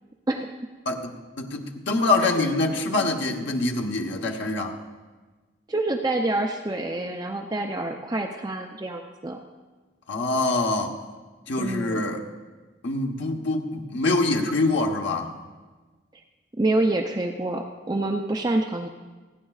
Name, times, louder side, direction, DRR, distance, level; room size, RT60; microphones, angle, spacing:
voice 1, 0.8-4.8 10.1-11.0 11.5-12.2 12.8-15.4, left 2 dB, 75° left, 2 dB, 1.1 m, -25 dB
voice 2, 5.7-9.4 11.6-12.0 16.6-18.9, right 2 dB, 20° right, 3 dB, 0.5 m, -27 dB
29.5 x 9.9 x 2.4 m, 1.3 s
head